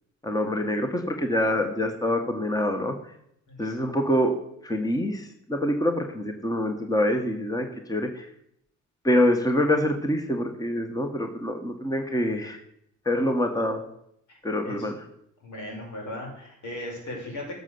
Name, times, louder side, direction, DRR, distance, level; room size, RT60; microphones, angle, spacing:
voice 1, 0.2-2.9 3.6-4.3 4.6-8.3 9.0-12.6 13.0-13.8 14.4-14.9, left 1 dB, 10° left, 5 dB, 1.6 m, -25 dB
voice 2, 3.5-4.1 14.6-15.0 15.4-17.6, left 1 dB, 75° left, 0 dB, 5.6 m, -37 dB
12.0 x 6.9 x 7.9 m, 0.75 s
cardioid pair, 90°, 30 cm